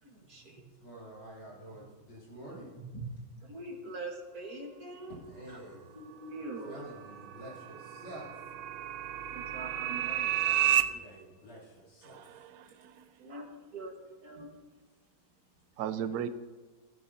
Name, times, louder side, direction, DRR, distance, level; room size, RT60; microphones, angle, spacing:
voice 1, 0.0-0.6 2.7-3.1 3.4-5.2 5.5-5.6 5.9-6.8 9.3-10.7 10.9-11.0 13.2-13.9 14.2-14.5, right 2 dB, 50° right, 1 dB, 2.1 m, -43 dB
voice 2, 0.8-2.7 5.1-5.9 6.6-8.4 10.2-12.5 14.3-14.5, right 1 dB, 80° left, -7 dB, 4.2 m, -49 dB
sound 1, 6.5-10.8, right 12 dB, 90° right, 1.4 m, -31 dB
voice 3, 12.0-13.0 15.8-16.3, right 9 dB, 70° right, 11 dB, 0.9 m, -37 dB
17.0 x 12.0 x 2.8 m, 1.3 s
omnidirectional pair, 2.2 m